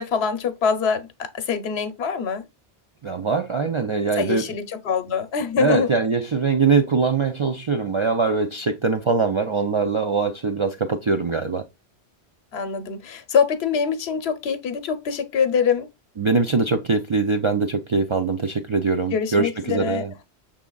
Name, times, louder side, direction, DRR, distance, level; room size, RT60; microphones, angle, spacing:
voice 1, 0.0-2.4 4.2-5.9 12.5-15.9 19.1-20.0, left 6 dB, 75° left, 1.0 m, -24 dB
voice 2, 3.0-4.5 5.6-11.6 16.2-20.2, right 4 dB, 50° right, 0.3 m, -22 dB
6.1 x 3.6 x 2.2 m
omnidirectional pair, 1.1 m